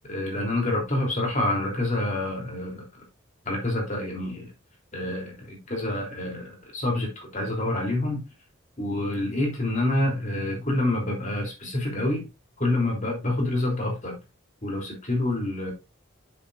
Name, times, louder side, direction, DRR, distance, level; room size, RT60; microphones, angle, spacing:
voice 1, 0.1-2.8 3.4-4.5 4.9-8.2 8.8-12.3 12.6-14.1 14.6-15.7, left 1 dB, 40° left, 3.4 m, -27 dB
8.5 x 7.6 x 2.6 m
head